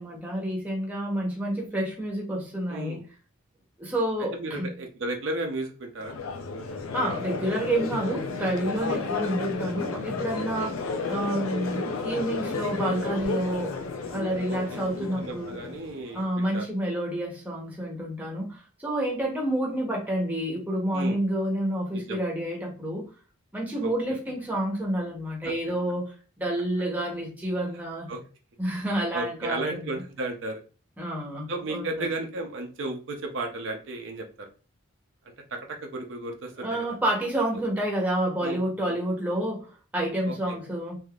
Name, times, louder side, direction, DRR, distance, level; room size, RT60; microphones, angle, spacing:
voice 1, 0.0-3.0 3.8-4.7 6.9-10.8 11.1-15.5 16.1-23.0 23.5-28.1 28.6-29.9 31.0-32.1 36.6-41.0, right 1 dB, 10° right, -2 dB, 0.8 m, -29 dB
voice 2, 2.7-3.1 4.3-6.2 8.8-9.0 14.5-16.6 20.9-21.2 21.9-22.3 23.8-24.2 25.4-25.5 28.1-28.2 29.1-30.6 31.5-34.5 35.5-37.0 38.4-38.6 38.9-39.0 40.3-40.6, right 2 dB, 60° right, 2 dB, 0.5 m, -34 dB
Crowd, 6.0-16.2, left 4 dB, 75° left, 0.5 m, -32 dB
3.3 x 2.5 x 2.3 m, 0.36 s
head